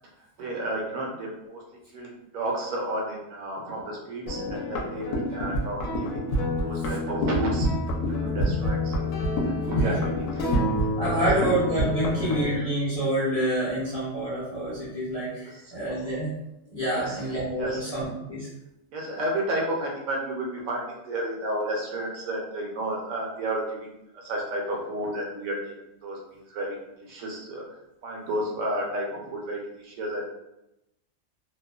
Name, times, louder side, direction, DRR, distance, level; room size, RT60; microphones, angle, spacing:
voice 1, 0.4-1.6 1.9-6.3 6.6-7.7 8.1-8.9 9.4-10.5 11.2-11.5 15.5-15.8 16.9-17.3 17.6-17.9 18.9-25.7 26.0-27.6 28.0-30.2, right 1 dB, 80° right, -2 dB, 1.1 m, -32 dB
sound 1, 4.3-12.6, equal, 75° left, 1.0 m, -27 dB
voice 2, 11.0-16.3 16.7-18.5, equal, 40° left, -9 dB, 0.6 m, -27 dB
2.7 x 2.1 x 2.3 m, 0.89 s
omnidirectional pair, 1.4 m